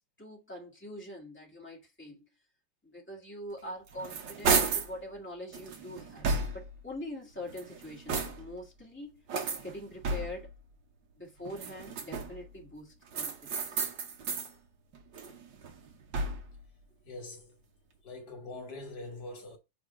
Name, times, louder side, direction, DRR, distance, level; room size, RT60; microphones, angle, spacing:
voice 1, 0.2-2.3 2.8-6.3 6.5-9.2 9.6-10.5 11.2-13.8, left 1 dB, 5° left, 1.4 m, -44 dB
sound 1, 3.6-5.0 5.5-6.8 7.4-8.6 9.3-10.5 11.4-12.5 13.1-14.5 14.9-16.6, right 4 dB, 65° right, 1.1 m, -33 dB
voice 2, 17.0-17.6 18.0-19.6, left 2 dB, 40° left, 2.0 m, -43 dB
6.3 x 3.5 x 4.3 m
omnidirectional pair, 3.4 m